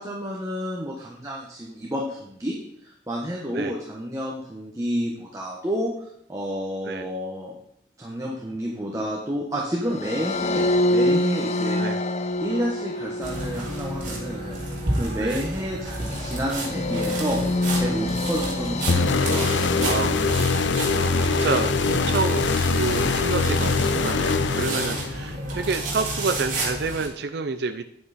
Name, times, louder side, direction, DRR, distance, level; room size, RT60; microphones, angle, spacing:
voice 1, 0.0-2.6 2.8-5.9 6.3-7.6 8.0-11.8 12.4-14.6 14.9-17.4 17.8-19.8, equal, 15° right, -2 dB, 1.2 m, -30 dB
sound 1, 9.9-21.2, left 1 dB, 35° left, 0.4 m, -27 dB
sound 2, 13.2-27.1, right 1 dB, 45° right, 2.7 m, -31 dB
sound 3, 18.9-25.3, left 4 dB, 80° left, 0.6 m, -23 dB
voice 2, 19.8-20.2 20.9-27.9, right 4 dB, 60° right, 8 dB, 0.5 m, -29 dB
9.3 x 8.6 x 4.2 m, 0.72 s
head